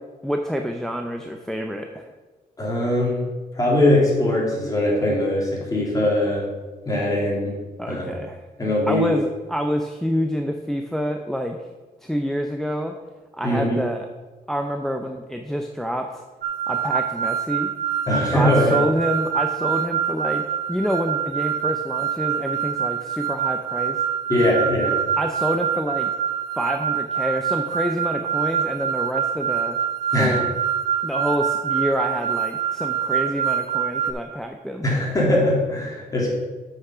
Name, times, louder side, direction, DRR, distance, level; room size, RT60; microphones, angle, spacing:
voice 1, 0.2-2.1 7.8-8.4 8.9-11.6 12.0-13.0 13.3-14.1 14.5-16.2 16.7-17.7 18.3-20.4 20.7-24.0 25.2-26.1 26.6-29.8 30.2-30.5 31.0-34.9, equal, 5° left, 4 dB, 0.6 m, -27 dB
voice 2, 2.6-3.2 3.5-6.4 6.8-7.5 7.9-8.1 8.6-9.1 13.4-13.8 18.1-18.8 24.3-25.0 30.1-30.4 34.8-36.3, left 1 dB, 25° left, -4 dB, 3.2 m, -21 dB
sound 1, 16.4-34.1, right 8 dB, 70° right, 1.1 m, -25 dB
8.1 x 6.0 x 5.7 m, 1.3 s
cardioid pair, 105°, 15 cm